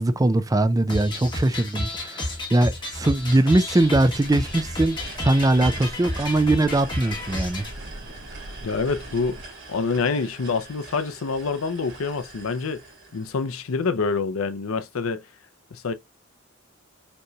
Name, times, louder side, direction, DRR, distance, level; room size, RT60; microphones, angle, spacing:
voice 1, 0.0-7.6, right 2 dB, 15° right, 0.4 m, -21 dB
sound 1, 0.9-7.7, left 1 dB, 25° left, 1.4 m, -31 dB
sound 2, 1.8-13.9, right 2 dB, 60° right, 2.4 m, -44 dB
sound 3, 3.9-9.4, right 1 dB, 85° right, 1.2 m, -42 dB
voice 2, 8.6-9.4 9.7-12.8 13.1-15.2 15.7-15.9, left 4 dB, 80° left, 0.6 m, -26 dB
5.2 x 3.1 x 2.3 m
head